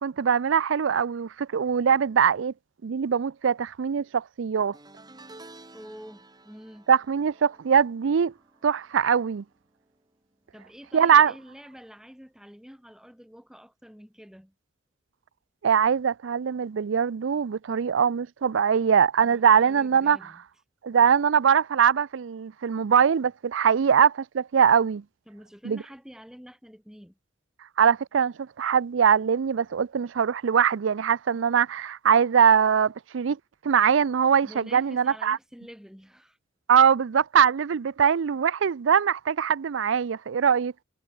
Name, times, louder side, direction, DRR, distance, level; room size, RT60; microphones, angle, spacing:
voice 1, 0.0-2.5 2.8-4.8 6.9-8.3 8.6-9.4 10.9-11.3 15.6-20.3 20.8-25.0 25.6-25.8 27.8-33.4 33.6-35.4 36.7-40.7, right 7 dB, 75° right, 0.4 m, -22 dB
sound 1, 4.7-10.1 10.4-10.8 12.0-12.1, right 2 dB, 20° right, 3.8 m, -52 dB
voice 2, 5.7-6.9 10.5-14.5 19.2-20.4 25.3-27.2 34.4-36.4, equal, 5° right, 2.5 m, -47 dB
head